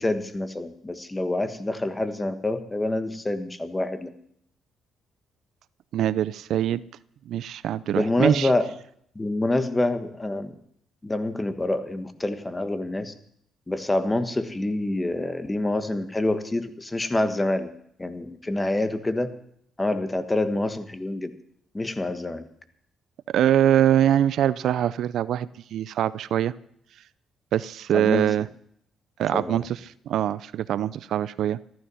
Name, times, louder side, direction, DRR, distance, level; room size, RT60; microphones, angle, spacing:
voice 1, 0.0-4.1 7.9-8.7 9.1-10.5 11.0-13.1 13.7-17.7 18.0-19.3 19.8-21.3 21.7-22.5 27.9-28.3 29.3-29.6, left 2 dB, 15° left, 9 dB, 1.4 m, -26 dB
voice 2, 5.9-6.8 7.3-8.5 23.3-26.5 27.5-28.5 29.2-29.8 30.1-31.6, right 11 dB, 75° right, 17 dB, 0.5 m, -23 dB
14.0 x 13.0 x 5.6 m, 0.68 s
cardioid pair, 90°, 0 cm